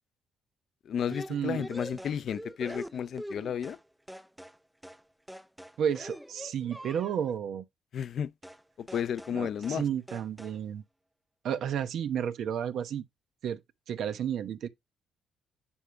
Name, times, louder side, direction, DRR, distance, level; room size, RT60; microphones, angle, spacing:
voice 1, 0.8-3.8 7.9-8.3 8.8-9.8, left 8 dB, 60° left, 0.5 m, -32 dB
sound 1, 1.1-3.8 4.1-4.6 4.8-5.0 5.3-7.4 8.4-8.6 8.9-9.4 9.6-9.8 10.1-10.6, equal, 5° right, 0.5 m, -44 dB
voice 2, 5.8-7.6 9.3-10.8 11.4-13.0 13.4-13.6 13.9-14.7, right 8 dB, 70° right, 0.9 m, -32 dB
10.0 x 3.6 x 5.2 m
cardioid pair, 90°, 0 cm